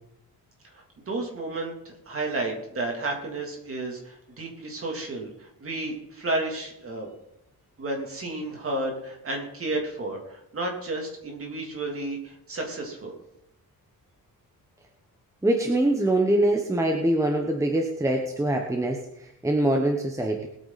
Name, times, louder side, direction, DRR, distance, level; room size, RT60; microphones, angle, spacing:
voice 1, 0.7-7.1 7.8-13.1, right 2 dB, 35° right, 1 dB, 3.1 m, -32 dB
voice 2, 15.4-20.5, right 1 dB, 10° right, 2 dB, 1.1 m, -24 dB
20.0 x 9.0 x 4.2 m, 0.80 s
wide cardioid pair, 180°, 36 cm